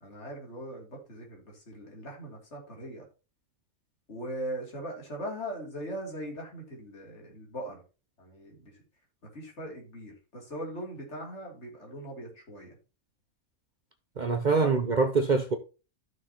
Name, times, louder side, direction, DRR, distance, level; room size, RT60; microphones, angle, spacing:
voice 1, 0.0-3.0 4.1-7.8 8.2-8.7 9.3-12.7 14.6-14.7, right 1 dB, 55° left, 3.1 m, -40 dB
voice 2, 14.2-15.6, right 4 dB, 50° right, 0.6 m, -24 dB
14.0 x 6.2 x 2.9 m
omnidirectional pair, 1.5 m